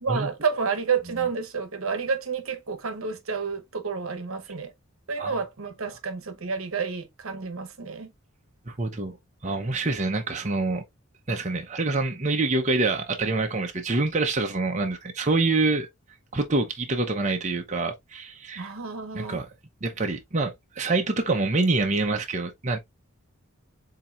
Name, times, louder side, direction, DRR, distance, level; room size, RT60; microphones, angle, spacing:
voice 1, 0.0-4.7 5.1-8.1 18.6-19.4, right 5 dB, 70° right, 1.0 m, -30 dB
voice 2, 8.7-9.2 9.4-10.8 11.3-15.9 16.3-18.7 19.1-19.5 19.8-22.8, right 3 dB, 35° right, 0.7 m, -26 dB
7.4 x 2.9 x 2.4 m
head